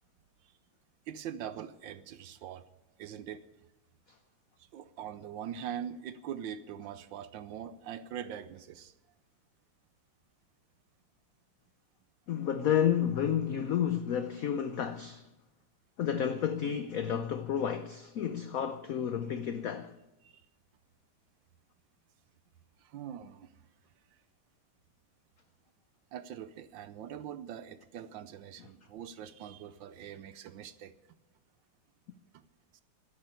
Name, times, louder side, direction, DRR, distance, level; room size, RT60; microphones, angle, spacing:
voice 1, 1.1-2.7 3.0-3.4 4.7-8.9 20.2-20.4 22.8-23.5 26.1-31.0 32.3-32.4 32.7-32.8, right 9 dB, 70° right, 1.3 m, -42 dB
voice 2, 12.3-15.2 16.0-19.9, left 9 dB, 85° left, 0.7 m, -31 dB
11.0 x 10.0 x 9.5 m
omnidirectional pair, 2.3 m